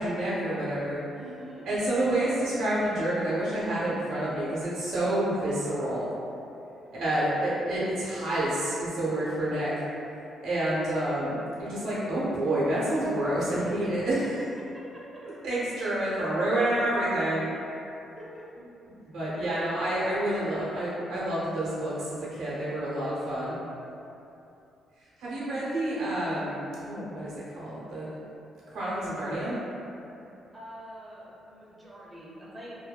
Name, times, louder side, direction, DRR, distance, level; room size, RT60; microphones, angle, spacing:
voice 1, 0.0-1.0 1.6-6.1 6.9-9.7 10.4-14.3 15.2-17.6 19.0-23.6 25.2-28.1 28.7-29.6, right 1 dB, 85° right, -9 dB, 0.8 m, -28 dB
voice 2, 1.1-1.6 6.9-7.6 14.6-15.0 17.1-17.6 18.2-18.4 25.4-25.7 30.2-32.8, equal, 15° right, -7 dB, 0.6 m, -46 dB
2.6 x 2.1 x 2.2 m, 2.8 s
cardioid pair, 90°, 0 cm